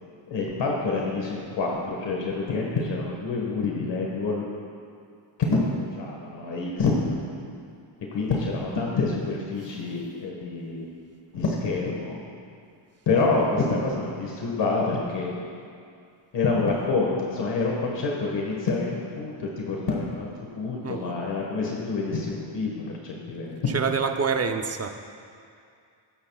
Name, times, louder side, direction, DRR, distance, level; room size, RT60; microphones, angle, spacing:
voice 1, 0.3-4.5 5.4-7.5 8.1-10.9 11.3-12.2 13.1-15.3 16.3-23.7, left 3 dB, 60° left, -2 dB, 1.7 m, -27 dB
voice 2, 20.8-21.2 23.7-24.9, right 5 dB, 30° right, 6 dB, 0.8 m, -26 dB
20.0 x 10.0 x 2.4 m, 2.3 s
cardioid pair, 110°, 47 cm